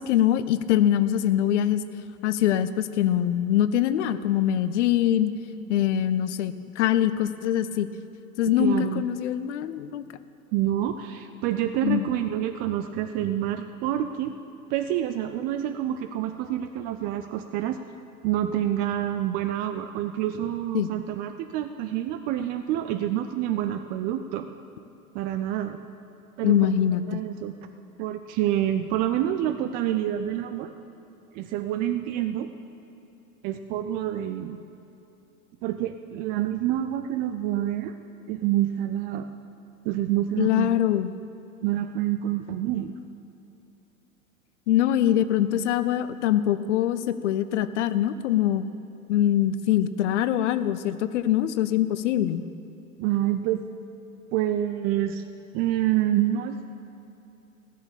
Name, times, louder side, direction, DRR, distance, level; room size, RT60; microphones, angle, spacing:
voice 1, 0.0-1.8 2.2-5.3 5.7-7.9 8.4-10.0 11.8-12.1 20.7-20.9 26.4-27.0 40.4-41.1 44.7-48.6 49.1-52.4, left 11 dB, 55° left, 13 dB, 0.8 m, -23 dB
voice 2, 8.6-9.0 10.5-14.3 14.7-17.8 18.2-24.5 25.1-25.8 26.4-26.7 27.1-27.5 28.0-30.7 31.3-32.5 33.4-34.6 35.6-37.9 38.3-39.3 39.8-40.7 41.6-42.9 53.0-53.6 54.3-55.2 55.5-56.6, right 12 dB, 25° right, 8 dB, 0.3 m, -27 dB
16.5 x 6.5 x 8.7 m, 2.9 s
figure-of-eight pair, 85°, 42 cm